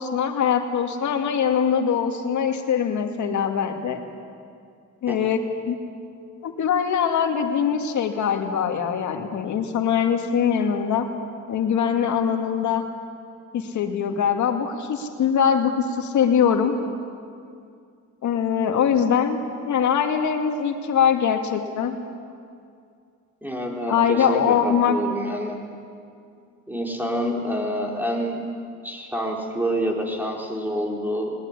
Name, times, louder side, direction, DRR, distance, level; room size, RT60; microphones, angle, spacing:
voice 1, 0.0-4.0 5.0-5.4 5.7-5.8 6.4-11.1 11.5-12.8 13.5-16.8 18.2-22.0 23.9-25.0, left 7 dB, 70° left, 5 dB, 2.3 m, -22 dB
voice 2, 23.4-25.6 26.7-28.4 28.8-31.3, equal, 5° right, -1 dB, 4.8 m, -27 dB
20.0 x 20.0 x 9.9 m, 2.3 s
cardioid pair, 90°, 30 cm